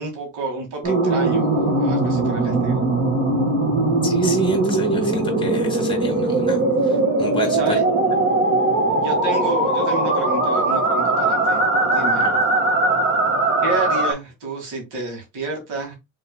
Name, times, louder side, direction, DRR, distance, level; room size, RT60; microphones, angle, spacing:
voice 1, 0.0-2.9 7.5-7.8 9.0-12.2 13.6-15.9, right 2 dB, 80° right, 1 dB, 2.4 m, -30 dB
sound 1, 0.8-14.1, right 2 dB, 35° right, 2.1 m, -20 dB
voice 2, 4.0-7.6 12.2-12.3, left 2 dB, 15° left, 3 dB, 2.0 m, -32 dB
5.2 x 3.8 x 2.4 m, 0.23 s
cardioid pair, 90°, 30 cm